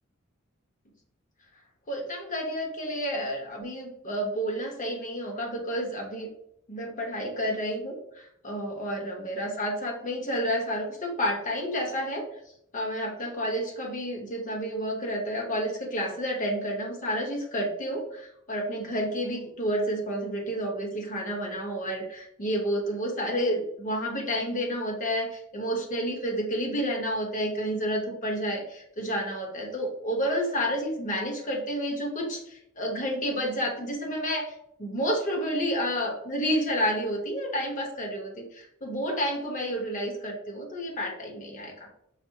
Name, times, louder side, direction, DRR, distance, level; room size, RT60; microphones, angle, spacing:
voice 1, 1.9-6.3 6.7-12.2 12.7-41.9, equal, 40° left, 1 dB, 0.9 m, -30 dB
5.8 x 2.0 x 2.8 m, 0.72 s
head